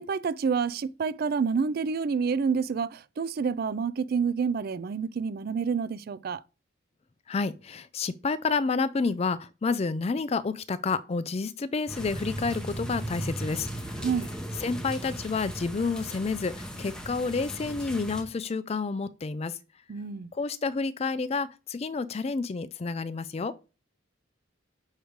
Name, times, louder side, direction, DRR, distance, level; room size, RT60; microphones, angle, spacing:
voice 1, 0.0-6.4 14.0-14.3 19.9-20.3, right 5 dB, 50° right, 0.3 m, -28 dB
voice 2, 7.3-13.7 14.0-14.1 14.6-19.6 20.3-23.5, left 4 dB, 30° left, 0.4 m, -29 dB
sound 1, 11.9-18.2, right 1 dB, 5° left, 0.8 m, -37 dB
6.4 x 3.1 x 5.0 m
head